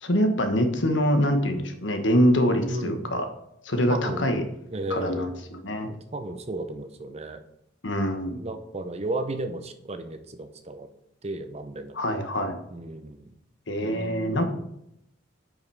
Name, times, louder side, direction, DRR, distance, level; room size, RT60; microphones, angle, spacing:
voice 1, 0.0-3.3 3.6-4.4 4.9-5.9 7.8-8.4 11.9-12.6 13.7-14.4, equal, 75° left, 6 dB, 1.3 m, -24 dB
voice 2, 2.7-3.1 3.9-4.4 4.7-5.3 5.9-7.4 8.3-10.9 11.2-12.2 12.7-13.3 13.8-14.6, right 2 dB, 35° right, 8 dB, 0.8 m, -34 dB
8.9 x 5.6 x 4.8 m, 0.77 s
head